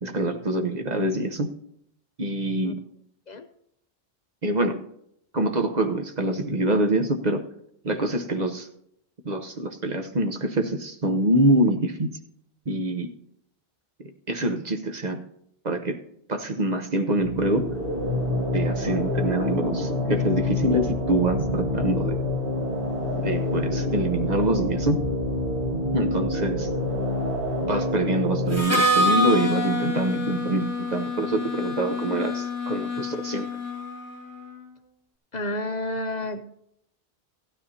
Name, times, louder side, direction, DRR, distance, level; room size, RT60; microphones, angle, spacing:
voice 1, 0.0-1.5 2.2-2.8 4.4-4.8 5.3-7.4 7.8-8.7 9.2-12.2 12.7-13.1 14.3-15.2 15.6-16.0 16.3-17.7 18.5-22.2 23.1-25.0 25.9-26.7 27.6-33.5, right 1 dB, 45° right, 5 dB, 1.0 m, -25 dB
sound 1, 17.1-28.6, left 2 dB, 60° right, 1.8 m, -27 dB
Harmonica, 28.5-34.2, left 1 dB, 15° right, 1.8 m, -26 dB
voice 2, 35.3-36.5, left 1 dB, 50° left, 7 dB, 0.7 m, -30 dB
15.5 x 12.5 x 2.8 m, 0.73 s
omnidirectional pair, 1.1 m